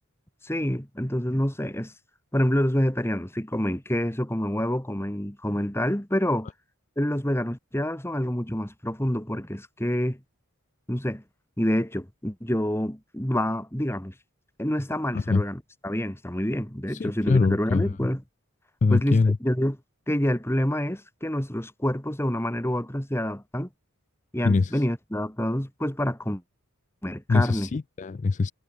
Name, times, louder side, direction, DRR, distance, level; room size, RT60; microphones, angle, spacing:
voice 1, 0.4-1.9 2.3-6.5 7.0-10.2 10.9-11.2 11.6-14.1 14.6-18.2 18.9-19.8 20.1-23.7 24.3-26.4 27.0-27.7, equal, 10° left, 2.6 m, -27 dB
voice 2, 16.9-17.8 18.8-19.4 24.4-24.8 27.3-28.5, left 4 dB, 35° left, 0.4 m, -23 dB
head